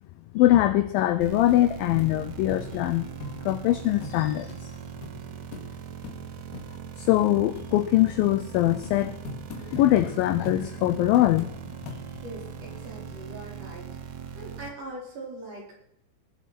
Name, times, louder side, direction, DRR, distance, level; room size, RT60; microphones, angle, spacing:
voice 1, 0.3-4.7 7.0-9.2 9.5-11.5, left 14 dB, 85° left, 11 dB, 2.0 m, -23 dB
sound 1, 1.0-1.1 1.5-1.6 2.0-2.1 2.5-3.6 4.0-4.2 4.5-4.6 5.0-5.1 5.5-5.7 6.0-6.2 6.5-6.7 7.1-7.2 7.6-7.7 8.1-8.2 8.5-10.1 10.5-10.6 11.2-11.5 11.9-12.3 12.9-13.0, left 3 dB, 65° left, 3.5 m, -40 dB
sound 2, 1.2-14.7, right 9 dB, 80° right, 1.6 m, -41 dB
voice 2, 12.2-14.0 14.3-15.8, right 2 dB, 40° right, -2 dB, 5.3 m, -41 dB
20.5 x 8.3 x 6.0 m, 0.76 s
omnidirectional pair, 4.9 m